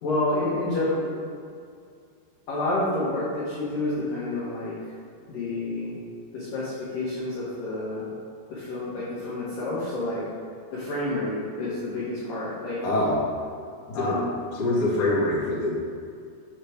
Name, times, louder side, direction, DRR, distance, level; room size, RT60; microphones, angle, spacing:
voice 1, 0.0-1.1 2.5-4.7 5.3-6.0 6.3-8.1 8.5-10.2 10.7-12.8 13.9-14.3, left 2 dB, 70° left, -8 dB, 2.2 m, -29 dB
voice 2, 12.8-13.2 13.9-14.2 14.5-15.7, left 1 dB, 45° left, -8 dB, 1.8 m, -24 dB
7.2 x 6.7 x 3.5 m, 2.3 s
omnidirectional pair, 5.6 m